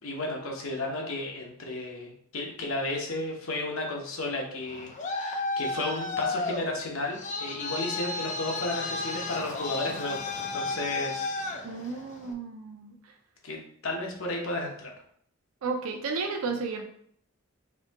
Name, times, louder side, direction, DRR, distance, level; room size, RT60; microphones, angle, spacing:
voice 1, 0.0-11.9 13.4-14.9, left 2 dB, 70° left, 0 dB, 1.0 m, -33 dB
Traffic noise roadway noise, 4.6-12.3, left 3 dB, 35° left, 0.5 m, -33 dB
voice 2, 11.6-13.0 15.6-16.8, right 4 dB, 85° right, 3 dB, 0.5 m, -33 dB
4.9 x 2.7 x 3.6 m, 0.65 s
head